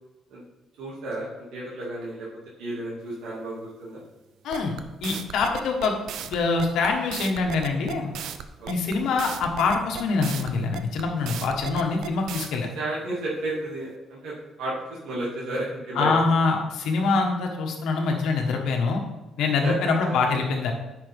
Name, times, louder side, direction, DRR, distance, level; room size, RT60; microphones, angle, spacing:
voice 1, 0.8-2.3 2.6-4.0 8.6-9.0 12.5-14.3 14.6-14.7 15.0-16.1 19.4-19.7 20.0-20.1, right 2 dB, 90° right, -6 dB, 2.2 m, -32 dB
sound 1, 4.5-12.5, right 9 dB, 70° right, 0.6 m, -35 dB
voice 2, 5.0-5.9 6.3-8.1 8.7-12.7 15.9-19.0 19.4-20.7, left 4 dB, 75° left, 2 dB, 1.4 m, -24 dB
10.0 x 5.7 x 3.6 m, 1.0 s
cardioid pair, 160°, 0 cm